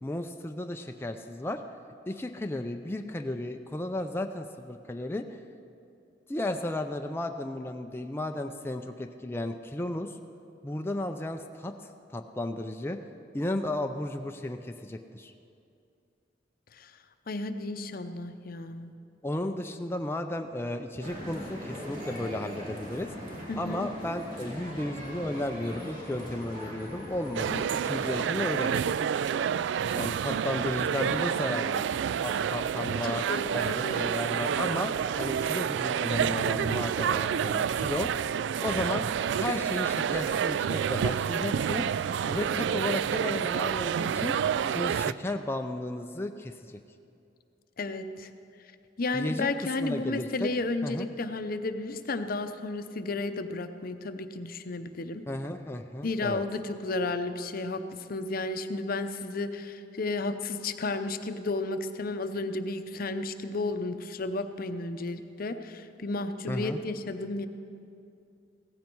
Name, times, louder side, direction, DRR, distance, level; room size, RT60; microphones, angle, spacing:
voice 1, 0.0-1.6 2.1-5.4 6.3-10.2 10.6-11.7 12.1-13.0 13.3-15.3 19.2-23.1 23.6-28.9 29.9-31.9 32.2-33.3 33.5-33.6 33.9-34.9 35.2-38.1 38.6-39.0 39.4-41.9 42.3-44.4 44.7-46.8 49.1-50.5 50.8-51.1 55.3-56.4 66.5-66.8, left 1 dB, 15° left, 4 dB, 0.4 m, -34 dB
voice 2, 17.3-18.9 23.5-23.9 33.0-34.0 47.8-48.3 49.0-55.2 56.0-67.5, left 2 dB, 55° left, 9 dB, 0.7 m, -33 dB
sound 1, 21.0-28.2, equal, 50° right, 2.5 m, -40 dB
sound 2, 27.3-45.1, right 8 dB, 75° right, 0.3 m, -29 dB
16.5 x 15.0 x 4.6 m, 2.6 s
head